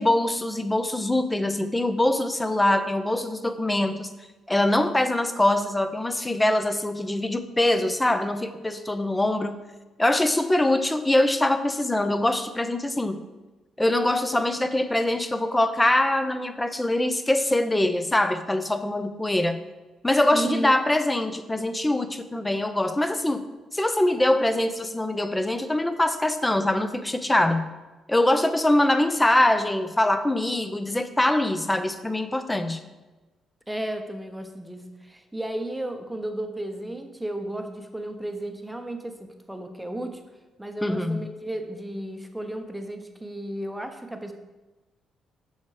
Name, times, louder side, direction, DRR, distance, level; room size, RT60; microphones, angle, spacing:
voice 1, 0.0-4.1 4.5-9.6 10.0-13.2 13.8-19.6 20.0-23.4 23.7-27.7 28.1-32.8 40.8-41.3, left 1 dB, 10° left, 10 dB, 0.6 m, -23 dB
voice 2, 20.3-20.7 33.7-40.2 40.6-44.3, right 1 dB, 5° right, 5 dB, 0.9 m, -33 dB
7.2 x 6.0 x 4.9 m, 1.2 s
cardioid pair, 90°, 0 cm